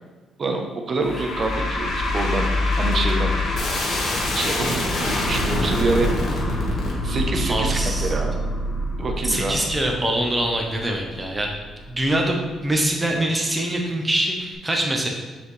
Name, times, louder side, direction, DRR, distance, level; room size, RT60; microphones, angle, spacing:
voice 1, 0.4-2.5 2.8-3.3 4.3-6.1 7.0-8.3 9.0-9.6, right 3 dB, 45° right, 3 dB, 0.9 m, -26 dB
sound 1, 1.0-12.3, left 1 dB, 65° left, 1.5 m, -25 dB
voice 2, 7.5-8.2 9.2-11.5 11.9-15.1, right 1 dB, 15° right, 0 dB, 1.0 m, -24 dB
6.7 x 4.4 x 3.3 m, 1.3 s
cardioid pair, 90°, 0 cm